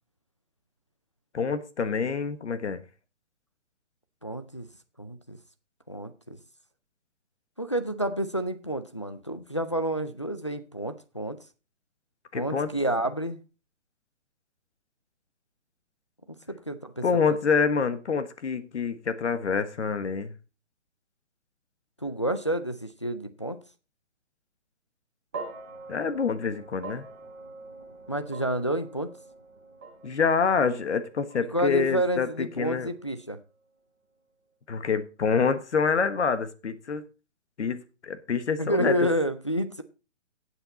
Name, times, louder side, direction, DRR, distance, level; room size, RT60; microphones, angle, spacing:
voice 1, 1.3-2.8 12.3-12.7 17.0-20.3 25.9-27.1 30.0-32.9 34.7-37.0 37.6-39.0, left 5 dB, 70° left, 1.5 m, -27 dB
voice 2, 4.2-4.7 5.0-5.4 5.9-6.4 7.6-11.4 12.3-13.4 16.3-17.0 22.0-23.6 28.1-29.1 31.4-33.4 38.6-39.8, right 1 dB, 25° left, 0.4 m, -29 dB
sound 1, 25.3-33.7, right 3 dB, 10° right, 0.8 m, -45 dB
12.0 x 8.1 x 4.1 m
hypercardioid pair, 175°, 36 cm